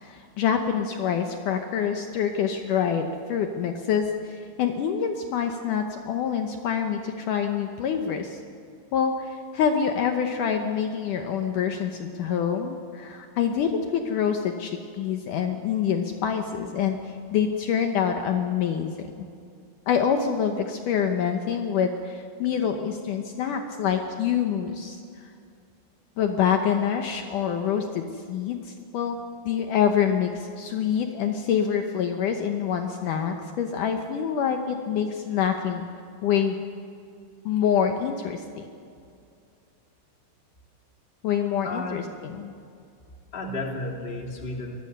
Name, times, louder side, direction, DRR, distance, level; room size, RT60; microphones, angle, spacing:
voice 1, 0.0-8.4 8.9-19.3 19.9-25.3 26.2-29.2 29.4-35.9 36.2-36.6 37.5-38.7 41.2-42.5, left 7 dB, 90° left, 5 dB, 1.8 m, -26 dB
voice 2, 41.6-42.0 43.3-44.8, left 2 dB, 20° left, 1 dB, 1.7 m, -32 dB
25.0 x 19.0 x 6.7 m, 2.4 s
omnidirectional pair, 5.2 m